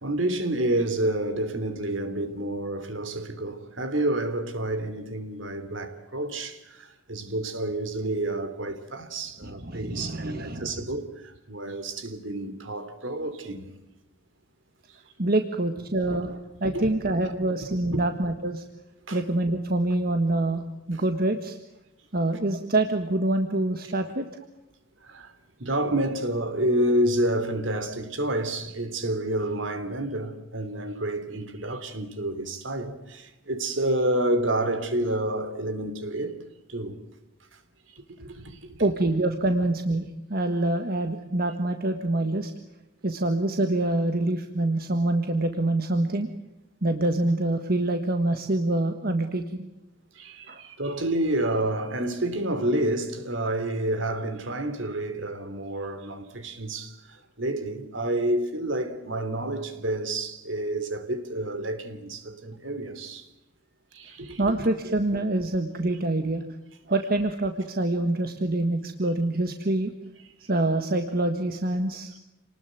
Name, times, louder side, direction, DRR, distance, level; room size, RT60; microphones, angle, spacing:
voice 1, 0.0-13.7 16.1-16.2 16.6-16.9 17.2-17.3 17.9-18.0 19.1-19.2 25.0-25.3 25.6-36.4 36.7-37.0 37.5-37.6 38.2-38.9 50.1-63.3 63.9-64.5, right 1 dB, 65° right, 3.2 m, -29 dB
voice 2, 9.4-10.7 15.2-18.6 19.1-20.6 20.9-21.6 22.1-24.3 38.8-42.5 43.0-46.3 46.8-49.7 50.5-50.6 64.4-66.4 66.9-69.9 70.5-72.1, right 2 dB, 45° right, 1.6 m, -26 dB
28.5 x 20.0 x 9.3 m
head